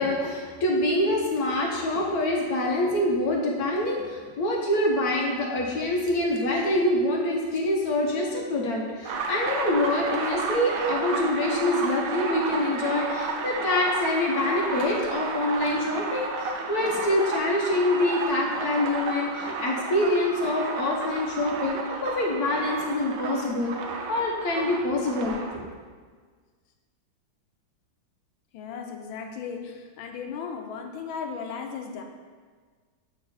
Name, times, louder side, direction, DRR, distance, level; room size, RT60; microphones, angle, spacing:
voice 1, 0.0-23.7 24.1-25.6, left 1 dB, 60° left, -1 dB, 1.2 m, -25 dB
sound 1, 9.0-25.6, right 3 dB, 70° right, 0.8 m, -32 dB
voice 2, 28.5-32.0, left 6 dB, 80° left, 4 dB, 1.5 m, -36 dB
7.6 x 4.1 x 4.2 m, 1.6 s
omnidirectional pair, 2.2 m